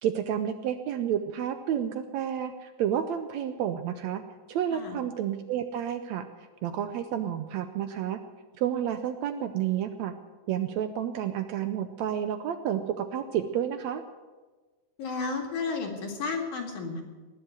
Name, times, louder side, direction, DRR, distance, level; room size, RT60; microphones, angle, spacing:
voice 1, 0.0-4.2 4.5-6.2 6.6-8.2 8.6-10.1 10.5-14.0, right 9 dB, 75° right, 9 dB, 1.7 m, -30 dB
voice 2, 15.0-17.0, left 4 dB, 70° left, 2 dB, 3.6 m, -32 dB
19.5 x 7.8 x 9.2 m, 1.3 s
omnidirectional pair, 3.7 m